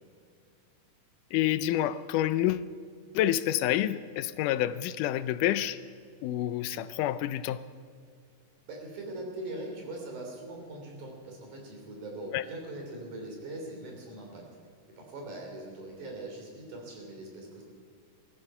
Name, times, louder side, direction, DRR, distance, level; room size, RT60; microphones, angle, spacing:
voice 1, 1.3-2.7 3.1-5.8 6.2-7.6 12.3-12.4, left 12 dB, 80° left, 14 dB, 2.1 m, -28 dB
voice 2, 8.7-14.5 15.0-17.6, right 1 dB, 65° right, 0 dB, 4.7 m, -41 dB
17.5 x 14.0 x 5.6 m, 2.2 s
omnidirectional pair, 3.7 m